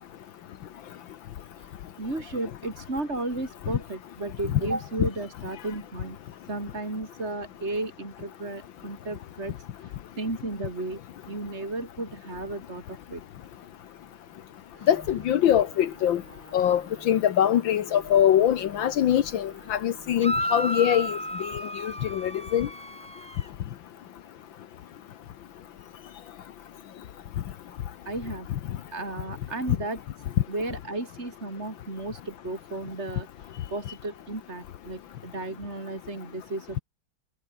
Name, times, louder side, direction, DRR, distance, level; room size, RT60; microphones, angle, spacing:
voice 1, 2.0-6.2 6.5-11.0 11.3-13.2 14.8-14.9 28.0-28.5 28.9-30.0 30.5-33.3 33.7-36.8, right 2 dB, 30° right, 4.6 m, -34 dB
sound 1, 14.7-21.3, right 2 dB, 65° right, 7.5 m, -51 dB
voice 2, 14.9-16.2 16.5-21.5 21.8-22.7, left 10 dB, 70° left, 1.7 m, -23 dB
sound 2, 20.2-23.5, equal, 5° left, 6.1 m, -33 dB
omnidirectional pair, 2.2 m